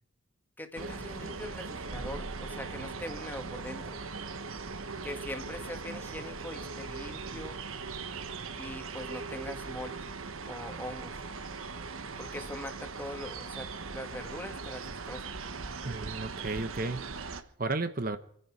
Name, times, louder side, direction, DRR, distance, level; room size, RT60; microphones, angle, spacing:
voice 1, 0.6-4.0 5.0-7.6 8.6-9.9 10.5-11.2 12.2-15.2, left 1 dB, 10° left, 5 dB, 1.7 m, -42 dB
sound 1, 0.7-17.4, right 4 dB, 80° right, 1.3 m, -40 dB
voice 2, 15.8-18.2, right 3 dB, 40° right, 10 dB, 0.9 m, -34 dB
27.0 x 10.0 x 4.8 m, 0.64 s
head